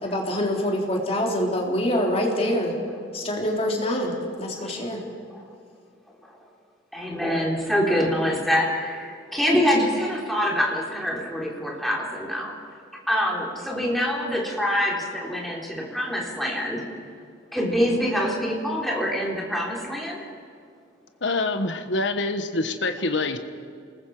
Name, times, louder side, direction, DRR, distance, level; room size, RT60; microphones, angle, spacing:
voice 1, 0.0-2.8 3.1-5.0, left 1 dB, 35° left, -1 dB, 3.8 m, -25 dB
voice 2, 6.9-12.5 13.1-16.8 17.5-20.2, equal, ahead, -3 dB, 3.8 m, -25 dB
voice 3, 21.2-23.4, left 2 dB, 70° left, 7 dB, 1.4 m, -25 dB
28.0 x 20.5 x 5.0 m, 2.4 s
head